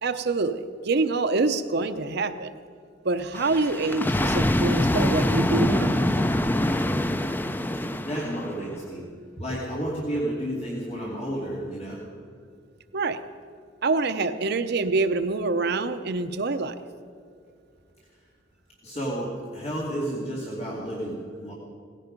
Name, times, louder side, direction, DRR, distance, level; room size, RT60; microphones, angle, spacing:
voice 1, 0.0-2.5 3.0-6.0 12.9-13.2 13.8-16.8, right 3 dB, 55° right, 10 dB, 0.7 m, -26 dB
sound 1, 3.3-8.8 9.4-9.6, left 1 dB, 10° left, 0.5 m, -24 dB
voice 2, 8.0-9.0 9.4-12.0 18.8-21.5, right 1 dB, 35° left, -4 dB, 2.6 m, -31 dB
18.0 x 15.0 x 5.2 m, 2.3 s
head